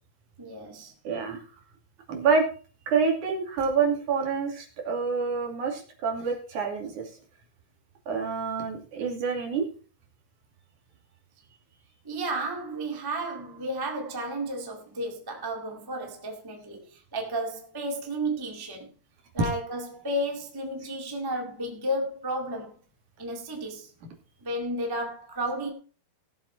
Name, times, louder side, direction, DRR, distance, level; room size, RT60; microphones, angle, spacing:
voice 1, 0.4-0.9 12.0-18.9 19.3-22.7 23.2-23.9 24.4-25.7, right 1 dB, 25° right, 0.5 m, -32 dB
voice 2, 1.0-1.4 2.1-2.5 2.9-7.1 8.1-9.7, right 5 dB, 50° right, 3.6 m, -27 dB
17.5 x 7.5 x 4.4 m
omnidirectional pair, 4.8 m